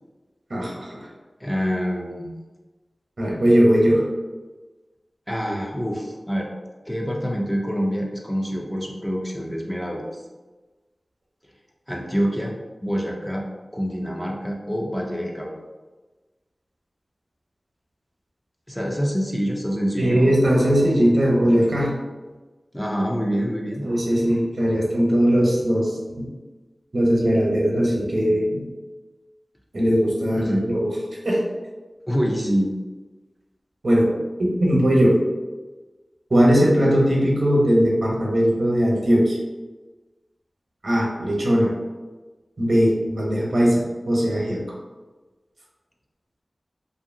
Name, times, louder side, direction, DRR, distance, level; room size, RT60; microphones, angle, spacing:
voice 1, 0.5-1.0 3.2-4.0 20.0-22.0 23.8-25.9 26.2-26.3 26.9-28.6 29.7-30.8 31.2-31.4 33.8-34.1 34.6-35.2 36.3-39.4 40.8-41.7 42.6-44.6, equal, 70° right, -4 dB, 0.8 m, -19 dB
voice 2, 1.4-2.3 5.3-6.5 6.9-10.1 11.9-12.6 12.8-13.5 13.7-15.5 18.7-20.2 22.7-23.9 30.4-30.6 32.1-32.7, equal, 10° left, -1 dB, 0.4 m, -26 dB
2.7 x 2.6 x 2.6 m, 1.2 s
wide cardioid pair, 75°, 0 cm